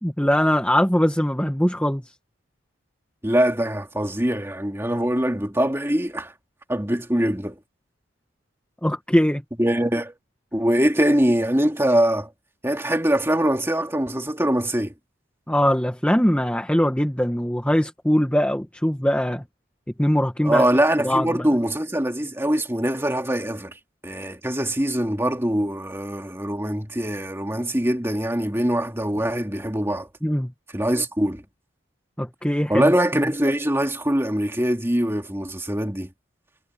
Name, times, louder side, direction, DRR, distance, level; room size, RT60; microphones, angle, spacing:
voice 1, 0.0-2.1 8.8-9.4 15.5-19.4 20.0-20.7 21.0-21.5 30.2-30.5 32.2-32.9, equal, 5° left, 1.5 m, -21 dB
voice 2, 3.2-6.3 6.7-7.6 9.6-10.1 10.5-12.3 12.6-14.9 20.4-23.7 24.0-30.1 30.7-31.4 32.7-36.1, right 1 dB, 10° right, 2.3 m, -23 dB
head